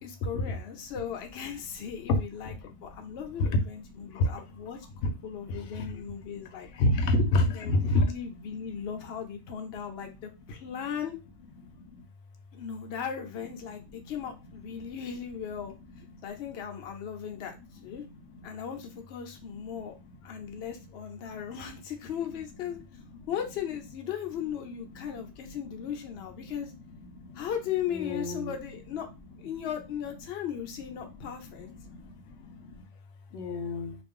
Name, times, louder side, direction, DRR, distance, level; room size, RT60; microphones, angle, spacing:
voice 1, 0.0-4.8 5.2-6.7 7.4-11.2 12.5-15.7 16.2-17.6 17.8-18.0 18.4-19.9 20.2-22.8 23.3-26.7 27.3-29.1 29.4-31.7, left 8 dB, 65° left, 4 dB, 0.9 m, -37 dB
voice 2, 6.8-8.0 27.9-28.5 33.3-34.0, left 2 dB, 90° left, 5 dB, 0.9 m, -25 dB
2.5 x 2.4 x 3.6 m, 0.27 s
omnidirectional pair, 1.2 m